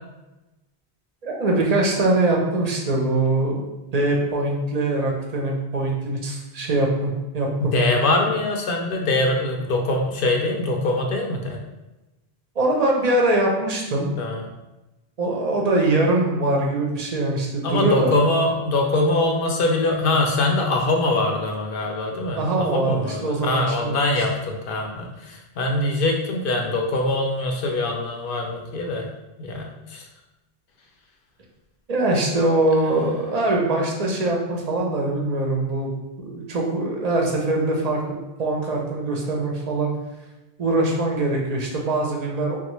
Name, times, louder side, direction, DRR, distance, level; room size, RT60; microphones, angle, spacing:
voice 1, 1.2-3.7 3.9-7.7 12.6-14.1 15.2-18.1 22.4-24.2 31.9-35.9 36.2-38.0 38.4-39.9 40.6-42.6, right 2 dB, 45° right, 0 dB, 0.6 m, -22 dB
voice 2, 7.6-11.6 14.2-14.4 17.6-29.0 29.4-30.0 32.9-33.0, left 2 dB, 65° left, 2 dB, 0.7 m, -23 dB
3.5 x 2.3 x 3.0 m, 1.0 s
omnidirectional pair, 1.1 m